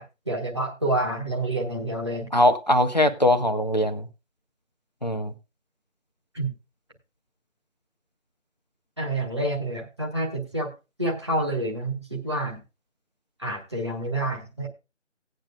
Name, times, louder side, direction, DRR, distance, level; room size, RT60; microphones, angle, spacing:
voice 1, 0.0-2.3 6.3-6.5 9.0-10.7 11.0-12.6 13.4-14.7, right 1 dB, 20° right, 1.3 m, -28 dB
voice 2, 2.3-4.1 5.0-5.3, left 1 dB, 35° left, 0.7 m, -21 dB
16.5 x 9.0 x 2.4 m
figure-of-eight pair, 165°, 38 cm